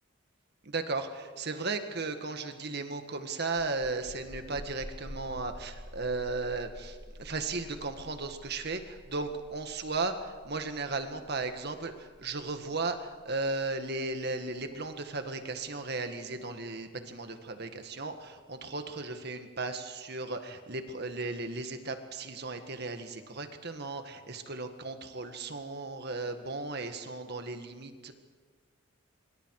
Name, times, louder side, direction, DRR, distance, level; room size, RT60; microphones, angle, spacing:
voice 1, 0.6-28.1, right 3 dB, 50° right, 7 dB, 1.8 m, -36 dB
sound 1, 3.5-16.9, equal, 20° left, 3.4 m, -49 dB
26.0 x 24.0 x 4.9 m, 1.5 s
head